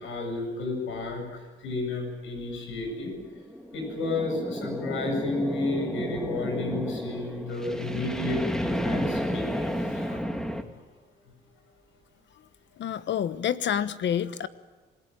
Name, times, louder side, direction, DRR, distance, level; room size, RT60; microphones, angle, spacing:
voice 1, 0.0-3.1 3.7-10.2, left 2 dB, 85° left, 3 dB, 7.8 m, -32 dB
sound 1, 2.9-10.6, equal, 5° left, 2.1 m, -32 dB
voice 2, 12.8-14.5, left 9 dB, 65° left, 13 dB, 1.2 m, -28 dB
26.5 x 17.5 x 9.1 m, 1.3 s
cardioid pair, 90°, 20 cm